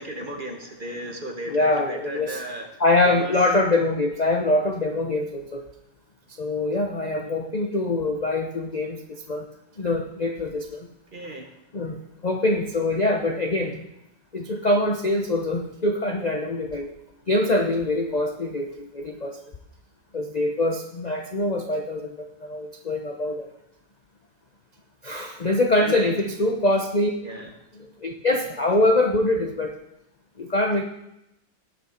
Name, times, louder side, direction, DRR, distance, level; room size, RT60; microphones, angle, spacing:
voice 1, 0.0-2.7 3.0-3.3 11.1-11.5 25.8-26.3 27.2-27.5, right 1 dB, 35° right, 4 dB, 0.9 m, -35 dB
voice 2, 1.5-2.4 2.8-5.6 6.4-9.5 9.8-10.9 11.7-13.8 14.3-16.9 17.3-19.4 20.1-23.5 25.0-27.1 28.0-29.7 30.4-30.8, left 2 dB, 50° left, 3 dB, 0.5 m, -24 dB
18.0 x 6.1 x 4.3 m, 0.86 s
omnidirectional pair, 2.0 m